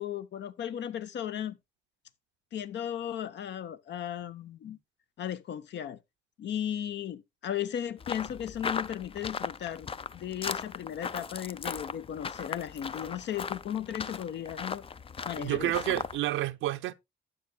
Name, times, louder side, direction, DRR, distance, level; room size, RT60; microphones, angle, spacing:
voice 1, 0.0-1.6 2.5-4.8 5.2-6.0 6.4-14.8 15.2-16.0, left 10 dB, 65° left, 0.8 m, -36 dB
sound 1, 8.0-16.2, left 5 dB, 30° left, 0.4 m, -38 dB
voice 2, 15.4-16.9, right 14 dB, 80° right, 0.5 m, -29 dB
12.0 x 7.9 x 2.2 m
cardioid pair, 90°, 20 cm